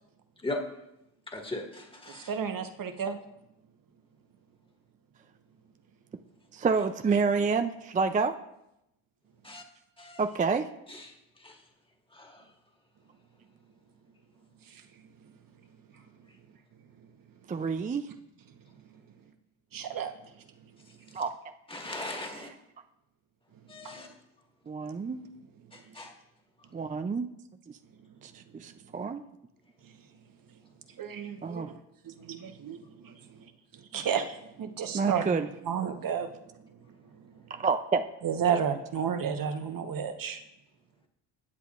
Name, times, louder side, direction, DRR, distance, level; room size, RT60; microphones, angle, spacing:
voice 1, 1.3-2.3 9.5-9.6 10.0-10.2 10.9-11.6 12.1-12.4 21.7-22.5 23.7-24.1 25.1-25.2 25.7-26.2, left 2 dB, 10° left, 1 dB, 1.8 m, -39 dB
voice 2, 2.1-3.2 14.7-14.8 19.7-20.1 23.8-23.9 29.8-29.9 31.0-31.8 32.0-36.3 37.2-37.3 38.2-40.4, right 7 dB, 50° right, 7 dB, 1.1 m, -32 dB
voice 3, 6.5-8.3 10.2-10.7 17.5-18.0 21.1-21.3 22.3-22.4 24.7-25.2 26.7-27.3 28.2-29.2 31.4-31.7 34.9-35.5 37.5-38.0, right 5 dB, 20° right, 8 dB, 0.4 m, -28 dB
15.5 x 8.2 x 2.5 m, 0.85 s
supercardioid pair, 80°, 45 cm